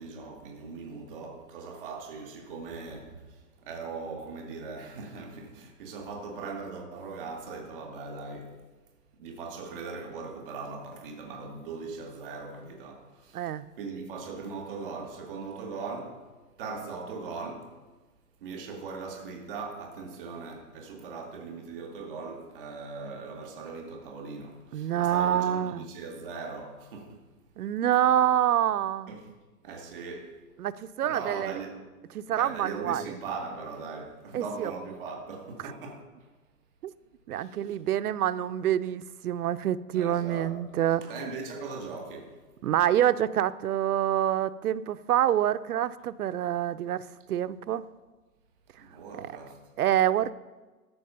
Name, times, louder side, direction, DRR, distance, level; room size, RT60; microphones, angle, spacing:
voice 1, 0.0-8.5 9.2-13.5 13.8-16.2 16.6-17.7 18.4-27.2 29.1-29.3 29.6-30.3 31.0-31.7 32.3-36.0 37.3-37.7 39.9-40.5 41.0-42.3 48.8-49.6, right 4 dB, 5° right, -12 dB, 0.4 m, -39 dB
voice 2, 13.3-13.6 24.7-25.9 27.6-29.1 30.6-31.5 32.1-33.1 34.3-34.7 37.3-41.0 42.6-47.8 49.1-49.3 49.8-50.3, right 11 dB, 70° right, 14 dB, 0.5 m, -26 dB
13.0 x 4.6 x 5.5 m, 1.2 s
hypercardioid pair, 155°, 46 cm